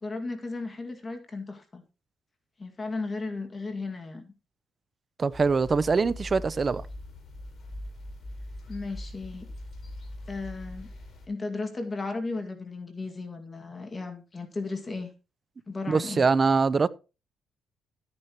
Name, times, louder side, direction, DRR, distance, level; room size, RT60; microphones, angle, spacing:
voice 1, 0.0-1.8 2.6-4.3 8.7-9.5 10.3-10.9 11.3-15.1 15.7-16.3, left 3 dB, 30° left, 2.1 m, -35 dB
voice 2, 5.2-6.8 15.9-16.9, right 4 dB, 35° right, 0.7 m, -23 dB
sound 1, 5.3-11.3, left 1 dB, 50° left, 4.4 m, -41 dB
13.5 x 9.8 x 3.0 m
cardioid pair, 90°, 0 cm